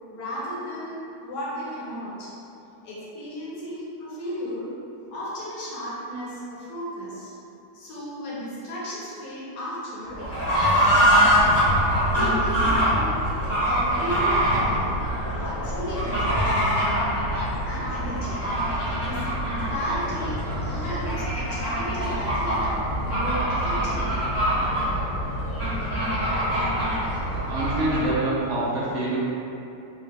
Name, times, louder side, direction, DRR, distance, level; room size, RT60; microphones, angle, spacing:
voice 1, 0.1-2.4 2.8-4.8 5.1-7.4 7.7-11.6 12.2-13.2 13.6-17.2 17.6-18.7 19.0-19.3 19.6-22.7 23.0-24.3 24.8-24.9 27.0-27.2, equal, 85° left, -7 dB, 1.5 m, -35 dB
Fowl / Bird, 10.1-28.2, equal, 15° left, 0.6 m, -24 dB
voice 2, 27.5-29.2, right 2 dB, 70° right, -7 dB, 0.7 m, -25 dB
4.3 x 2.1 x 3.3 m, 2.8 s
omnidirectional pair, 1.8 m